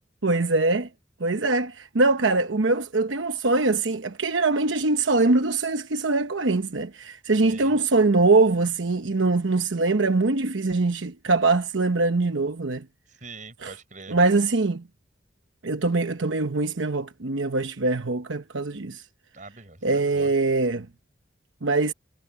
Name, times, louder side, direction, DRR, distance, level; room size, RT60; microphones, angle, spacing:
voice 1, 0.2-0.9 1.2-12.8 13.6-13.7 14.1-14.8 15.6-19.0 19.8-20.9 21.6-21.9, right 3 dB, 85° right, 1.0 m, -23 dB
voice 2, 7.4-7.8 13.2-14.2 19.3-20.3, right 3 dB, 40° right, 5.8 m, -43 dB
head